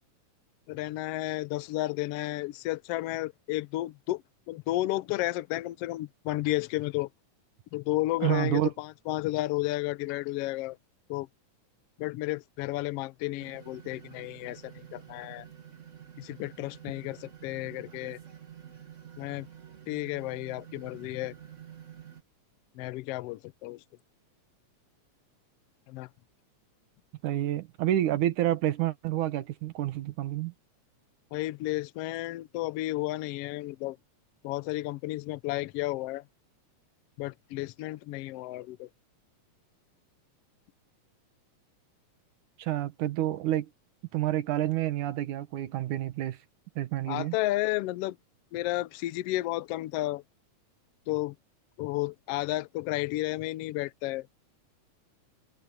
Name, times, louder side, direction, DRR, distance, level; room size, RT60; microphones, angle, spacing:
voice 1, 0.7-4.2 4.5-7.1 7.7-10.8 11.1-11.3 12.0-15.4 16.2-18.2 19.2-19.5 19.9-21.3 22.8-23.8 25.9-26.1 31.3-34.0 34.4-36.2 37.2-38.9 47.1-48.2 48.5-50.2 51.1-51.3 51.8-54.3, left 17 dB, 90° left, 1.3 m, -32 dB
voice 2, 8.2-8.7 27.2-30.5 42.6-43.7 44.1-46.4 46.8-47.4, right 13 dB, 90° right, 2.7 m, -29 dB
sound 1, 13.4-22.2, right 9 dB, 35° right, 1.4 m, -49 dB
omnidirectional pair, 3.4 m